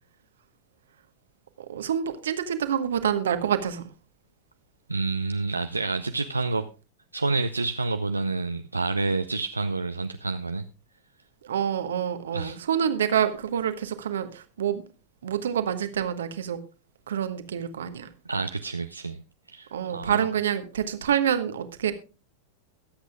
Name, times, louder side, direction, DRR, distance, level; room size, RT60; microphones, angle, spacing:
voice 1, 1.6-3.9 11.4-14.8 15.2-16.6 17.1-18.1 19.7-21.9, right 9 dB, 65° right, 1.2 m, -27 dB
voice 2, 4.9-6.7 7.1-10.7 12.3-12.6 18.3-19.2 19.5-20.3, right 3 dB, 80° right, 0.5 m, -28 dB
22.5 x 8.1 x 2.3 m
figure-of-eight pair, 90°, 0 cm